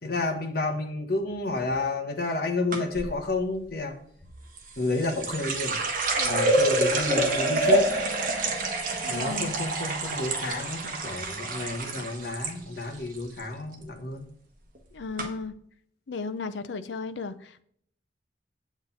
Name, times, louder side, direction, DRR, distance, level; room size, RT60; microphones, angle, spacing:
voice 1, 0.0-3.9 4.8-5.8 6.2-8.3 9.0-14.2, left 2 dB, 55° left, 1.4 m, -30 dB
sound 1, 2.7-3.1 4.6-12.5 12.8-13.4 13.7-14.1 14.7-14.8 15.2-15.3, right 2 dB, 45° right, 1.4 m, -27 dB
voice 2, 9.0-9.5 14.9-15.5 16.1-17.6, left 4 dB, 70° left, 0.6 m, -35 dB
8.0 x 7.3 x 4.0 m
head